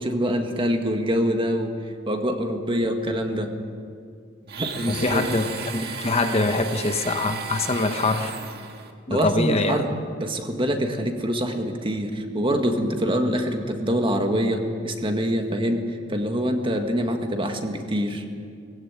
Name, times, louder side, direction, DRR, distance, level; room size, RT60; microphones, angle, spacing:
voice 1, 0.0-1.7 2.1-3.5 4.5-5.2 9.1-9.9 10.2-15.8 16.1-18.2, equal, 30° right, 4 dB, 1.8 m, -25 dB
Domestic sounds home sounds, 4.5-8.9, right 5 dB, 55° right, 1.8 m, -34 dB
voice 2, 4.9-8.3 9.1-9.8, left 2 dB, 35° left, 6 dB, 1.1 m, -24 dB
21.0 x 16.0 x 9.0 m, 2.3 s
head